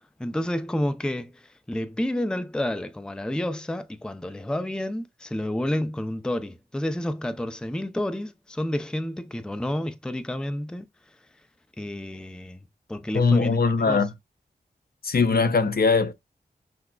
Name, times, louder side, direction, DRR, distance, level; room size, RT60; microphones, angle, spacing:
voice 1, 0.2-10.9 11.8-14.0, left 1 dB, 5° left, 0.5 m, -30 dB
voice 2, 13.1-14.1 15.0-16.1, left 4 dB, 60° left, 0.7 m, -21 dB
5.9 x 2.1 x 2.3 m
cardioid pair, 45°, 18 cm